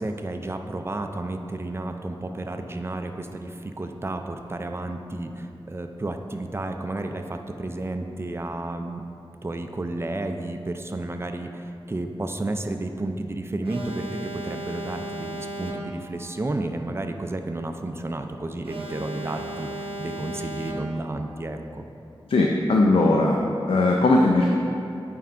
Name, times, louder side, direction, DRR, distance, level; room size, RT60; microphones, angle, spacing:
voice 1, 0.0-9.0 9.4-21.8, right 2 dB, 25° right, 6 dB, 0.4 m, -32 dB
Alarm, 13.6-16.2 18.6-21.2, right 1 dB, 75° right, 0.6 m, -35 dB
voice 2, 22.3-24.5, left 2 dB, 70° left, 0 dB, 0.4 m, -19 dB
9.1 x 4.5 x 2.5 m, 2.7 s
wide cardioid pair, 75°, 10 cm